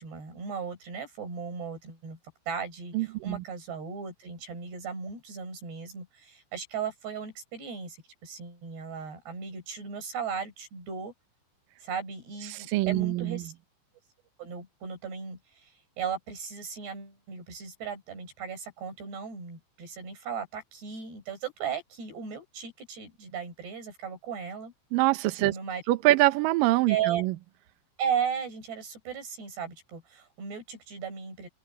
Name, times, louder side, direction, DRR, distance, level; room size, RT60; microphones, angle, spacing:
voice 1, 0.0-2.2 2.5-11.1 11.8-13.5 14.4-24.7 25.4-26.2 26.9-27.3 28.0-31.5, right 7 dB, 60° right, 9.2 m, -36 dB
voice 2, 2.9-3.4 12.5-13.4 24.9-25.5 25.9-27.3, right 17 dB, 90° right, 2.0 m, -24 dB
open air
omnidirectional pair, 5.4 m